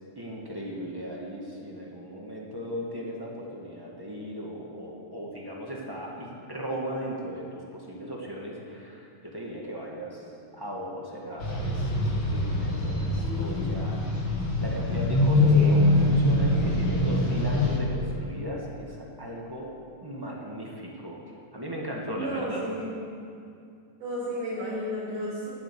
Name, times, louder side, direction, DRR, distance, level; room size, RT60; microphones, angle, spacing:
voice 1, 0.1-10.2 10.5-14.0 14.6-19.7 20.0-21.2 21.5-22.6, equal, 15° right, -3 dB, 0.8 m, -37 dB
sound 1, 11.4-17.8, left 2 dB, 40° left, 2.4 m, -24 dB
voice 2, 15.4-15.9 22.1-23.0 24.0-25.5, equal, 70° right, -7 dB, 6.3 m, -32 dB
17.0 x 9.2 x 7.0 m, 2.4 s
omnidirectional pair, 3.9 m